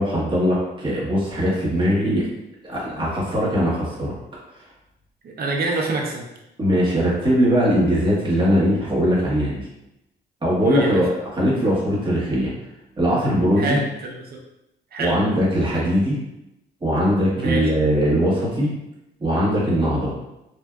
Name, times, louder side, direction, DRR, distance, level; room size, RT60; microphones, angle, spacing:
voice 1, 0.0-2.3 2.6-4.1 6.6-9.7 10.4-11.1 11.3-12.5 13.0-13.8 15.0-16.2 16.8-18.7 19.2-20.1, equal, 25° right, -6 dB, 1.2 m, -20 dB
voice 2, 5.2-6.3 10.6-11.0 13.6-14.4 14.9-15.2 17.4-17.7, right 2 dB, 50° right, 0 dB, 0.7 m, -26 dB
3.5 x 2.6 x 2.2 m, 0.90 s
cardioid pair, 90°, 20 cm